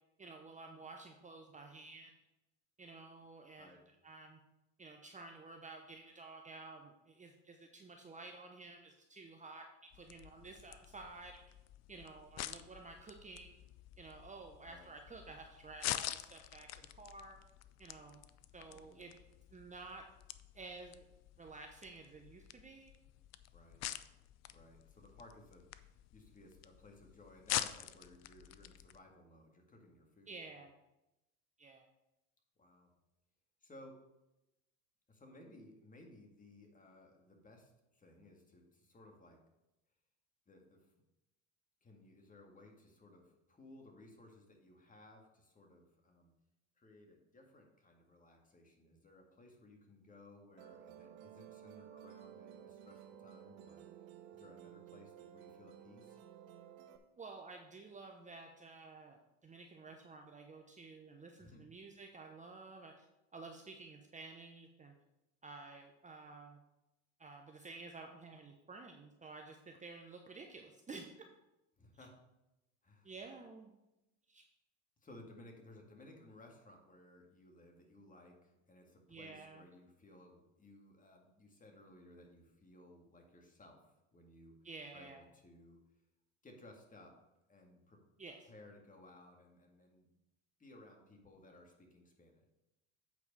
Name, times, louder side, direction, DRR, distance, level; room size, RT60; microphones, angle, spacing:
voice 1, 0.2-2.1 2.8-3.8 4.0-4.4 4.8-11.5 11.9-13.6 14.0-17.4 17.8-18.2 18.5-19.2 19.5-20.0 20.5-21.0 21.4-22.9 30.3-30.7 31.6-31.9 57.2-63.1 63.3-64.9 65.4-66.6 67.2-71.1 73.0-73.7 74.3-74.5 79.1-79.6 84.6-85.2 88.2-88.5, right 3 dB, 20° right, 3 dB, 0.9 m, -52 dB
sound 1, 9.9-29.0, left 13 dB, 45° left, 0.5 m, -47 dB
voice 2, 18.6-19.1 23.5-23.8 24.5-30.5 32.6-32.9 33.6-34.0 35.1-39.4 40.5-40.9 41.8-46.3 46.8-53.8 54.3-56.2 61.4-61.7 71.8-72.2 72.8-73.1 75.0-84.6 84.9-85.8 86.4-87.2 87.5-88.0 88.5-90.2 90.6-92.5, left 1 dB, 20° left, 2 dB, 2.0 m, -59 dB
Musical instrument, 50.6-57.0, right 10 dB, 75° right, 1.0 m, -55 dB
8.4 x 4.7 x 5.4 m, 0.93 s
supercardioid pair, 95°, 36 cm